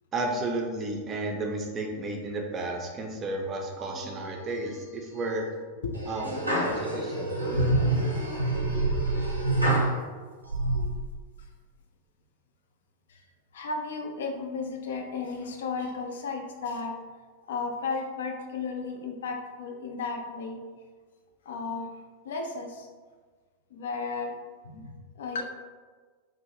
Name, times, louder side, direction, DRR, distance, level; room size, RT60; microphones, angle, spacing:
voice 1, 0.1-5.5 6.1-6.3 6.6-7.4, right 2 dB, 25° right, 1 dB, 0.4 m, -32 dB
sound 1, 3.8-4.5 4.9-5.4 5.9-9.9 10.4-10.8, right 2 dB, 85° right, 0.5 m, -27 dB
voice 2, 13.5-17.0 17.5-20.6 21.5-21.9 22.2-22.9 23.7-24.4 24.6-25.4, left 4 dB, 60° left, 3 dB, 0.3 m, -34 dB
2.5 x 2.0 x 3.0 m, 1.5 s
figure-of-eight pair, 90°, 0 cm